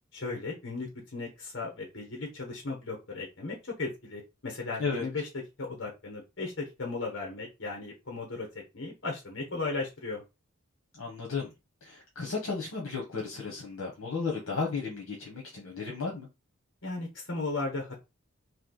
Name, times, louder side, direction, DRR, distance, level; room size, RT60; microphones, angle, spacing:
voice 1, 0.1-5.3 5.6-8.5 8.7-10.2 16.8-18.0, left 3 dB, 60° left, 0 dB, 1.1 m, -36 dB
voice 2, 11.0-11.5 11.8-16.3, left 4 dB, 80° left, -1 dB, 1.1 m, -34 dB
3.2 x 2.7 x 3.9 m, 0.25 s
head